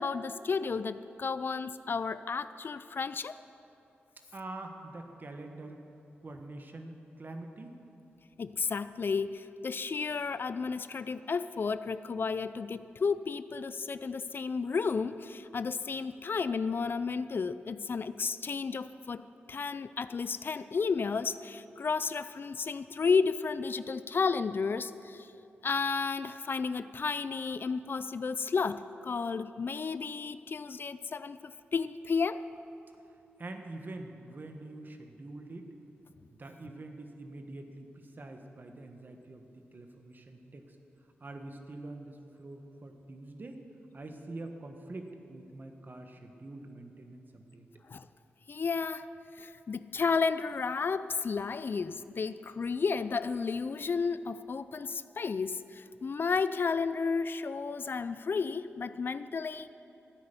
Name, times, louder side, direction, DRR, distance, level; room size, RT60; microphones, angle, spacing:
voice 1, 0.0-3.3 8.4-25.3 25.6-32.4 47.9-48.1 48.5-49.1 49.4-59.7, left 5 dB, 55° left, 14 dB, 0.4 m, -32 dB
voice 2, 4.3-5.8 6.2-7.8 33.4-35.7 36.3-40.6 41.2-43.6 43.9-47.7, right 2 dB, 45° right, 5 dB, 1.4 m, -45 dB
13.5 x 9.5 x 6.9 m, 2.8 s
cardioid pair, 55°, 4 cm